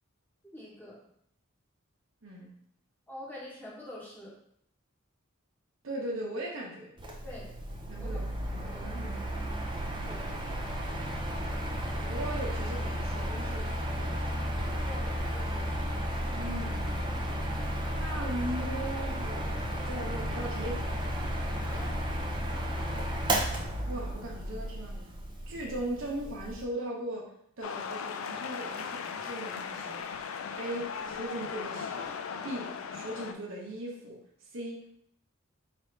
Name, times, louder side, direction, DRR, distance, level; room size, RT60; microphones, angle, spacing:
voice 1, 0.5-1.1 3.1-4.3 7.2-7.6 8.0-8.2 8.7-8.9 10.1-10.3 14.8-15.8 21.6-22.0, left 1 dB, 10° left, -7 dB, 1.3 m, -46 dB
voice 2, 5.8-6.9 7.9-9.1 10.9-11.7 12.0-14.6 16.3-17.0 17.9-20.9 23.9-25.1 25.5-27.3 27.6-30.1 30.6-32.1 32.4-34.2 34.5-34.9, right 1 dB, 70° right, -1 dB, 0.9 m, -39 dB
Mechanical fan, 7.0-26.6, equal, 25° right, 0.5 m, -33 dB
sound 1, 27.6-33.3, left 6 dB, 80° left, 0.4 m, -38 dB
3.3 x 2.7 x 4.5 m, 0.69 s
head